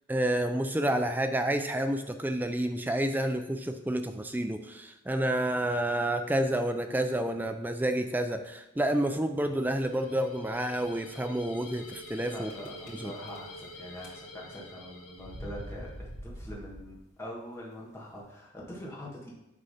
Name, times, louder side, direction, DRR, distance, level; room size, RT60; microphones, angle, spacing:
voice 1, 0.1-12.5 12.9-13.1, right 1 dB, 10° right, 7 dB, 0.4 m, -29 dB
sound 1, 9.4-9.8 10.5-10.6 10.8-10.9 11.8-12.2 12.5-13.6 13.9-14.5 15.2-17.1, equal, 55° left, 2.5 m, -44 dB
sound 2, 9.5-15.9, left 1 dB, 80° left, 1.3 m, -48 dB
voice 2, 12.3-19.3, equal, 10° left, -5 dB, 1.7 m, -43 dB
8.2 x 3.8 x 5.7 m, 0.94 s
head